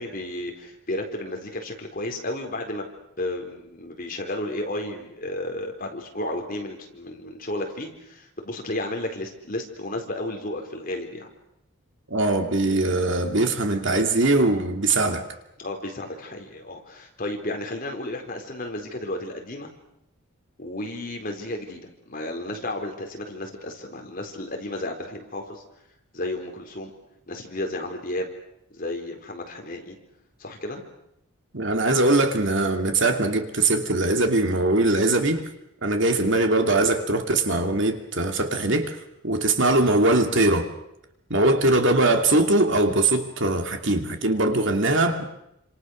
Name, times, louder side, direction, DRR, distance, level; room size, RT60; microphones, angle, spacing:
voice 1, 0.0-2.9 3.2-11.3 15.6-19.7 20.6-25.6 26.1-26.9 27.3-28.3 28.7-30.0 30.4-30.8, left 1 dB, 40° left, 4.2 m, -33 dB
voice 2, 12.1-15.3 31.5-35.4 35.8-40.7 41.3-45.3, right 2 dB, 55° right, 2.7 m, -21 dB
29.0 x 27.0 x 6.5 m
head